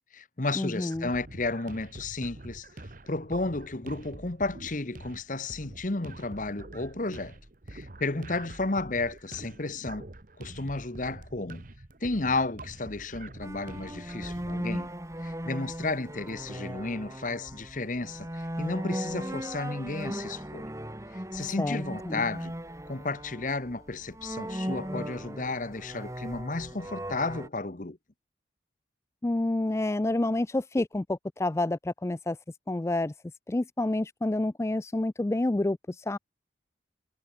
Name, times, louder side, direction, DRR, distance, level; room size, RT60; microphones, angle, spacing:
voice 1, 0.0-7.4 7.7-10.1 10.4-11.7 12.0-14.9 15.2-20.7 21.1-22.5 22.9-28.0, left 3 dB, 45° left, 1.2 m, -33 dB
voice 2, 0.6-1.1 21.6-22.2 29.2-32.4 32.7-33.1 33.5-36.2, left 2 dB, 15° left, 0.3 m, -28 dB
sound 1, 0.9-14.7, right 2 dB, 45° right, 1.3 m, -46 dB
sound 2, 13.4-27.5, equal, 15° right, 2.6 m, -38 dB
head